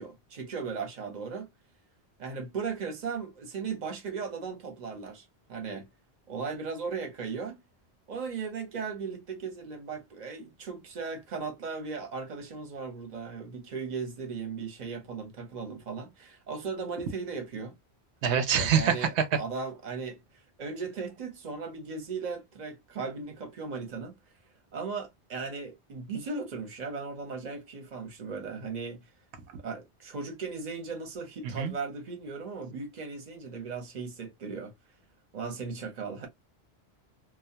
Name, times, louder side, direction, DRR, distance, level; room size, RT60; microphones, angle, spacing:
voice 1, 0.0-1.5 2.2-5.9 6.3-7.6 8.1-17.7 18.6-20.2 20.6-24.2 24.7-29.0 29.6-34.7 35.3-36.3, right 5 dB, 45° right, 0.8 m, -37 dB
voice 2, 18.2-19.2 31.6-31.7, right 7 dB, 85° right, 0.9 m, -25 dB
2.2 x 2.1 x 2.7 m
omnidirectional pair, 1.1 m